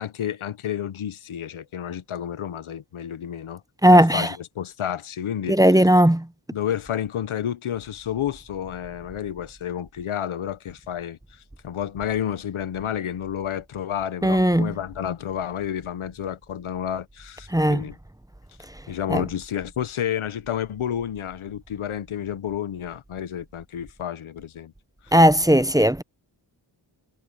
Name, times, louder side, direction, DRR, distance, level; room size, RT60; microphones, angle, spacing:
voice 1, 0.0-3.6 3.9-5.6 6.5-11.2 11.6-18.0 18.9-24.7 25.0-25.1, left 9 dB, 90° left, 1.1 m, -30 dB
voice 2, 3.8-4.3 5.5-6.2 14.2-14.7 17.5-17.8 19.1-19.2 25.1-26.0, equal, 10° right, 0.8 m, -16 dB
cardioid pair, 55°, 47 cm